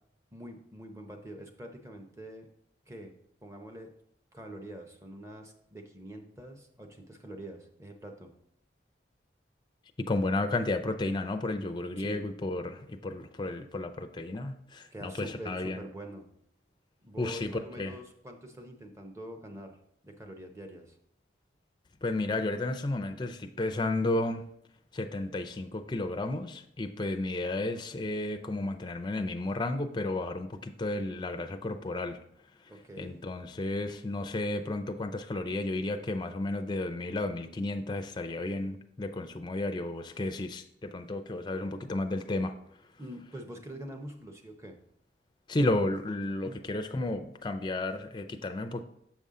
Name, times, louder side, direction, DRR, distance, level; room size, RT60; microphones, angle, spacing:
voice 1, 0.3-2.5 2.9-3.1 3.4-3.9 4.3-8.3 12.0-12.2 14.9-16.3 17.0-19.8 20.0-21.0 32.7-33.2 43.0-44.8, right 1 dB, 15° right, 4 dB, 0.7 m, -45 dB
voice 2, 10.1-15.8 17.2-17.5 17.8-18.0 22.0-24.4 24.9-32.2 33.0-42.5 45.5-48.8, left 2 dB, 25° left, 7 dB, 0.4 m, -32 dB
7.2 x 5.4 x 3.7 m, 0.72 s
head